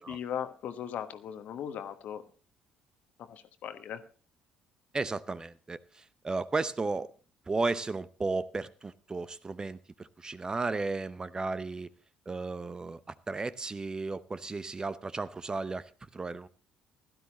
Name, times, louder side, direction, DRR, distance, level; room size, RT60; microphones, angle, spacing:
voice 1, 0.0-2.2 3.2-4.0, left 9 dB, 55° left, 10 dB, 1.3 m, -38 dB
voice 2, 4.9-7.1 7.5-11.9 12.3-16.5, right 3 dB, 25° right, 16 dB, 0.7 m, -34 dB
16.5 x 12.5 x 2.9 m, 0.38 s
figure-of-eight pair, 50°, 3 cm